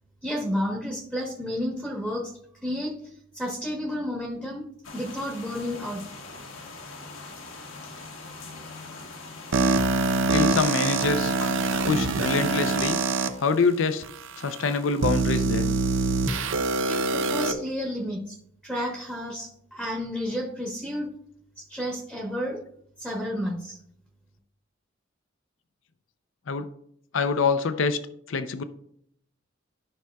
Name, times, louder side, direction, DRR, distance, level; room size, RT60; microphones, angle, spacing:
voice 1, 0.2-2.3 2.6-4.6 4.9-6.0 16.6-18.4 18.6-21.1 21.6-22.6 23.0-23.8, equal, 5° right, -1 dB, 1.1 m, -31 dB
sound 1, 4.8-13.0, left 3 dB, 85° left, 1.3 m, -42 dB
sound 2, 9.5-13.3 14.0-14.1 15.0-17.5, right 3 dB, 70° right, 0.6 m, -24 dB
voice 2, 10.3-11.4 11.8-13.0 13.4-14.1 14.4-15.7 26.5-26.7 27.1-28.0 28.3-28.6, left 4 dB, 70° left, 11 dB, 0.5 m, -25 dB
12.5 x 5.7 x 2.3 m, 0.68 s
head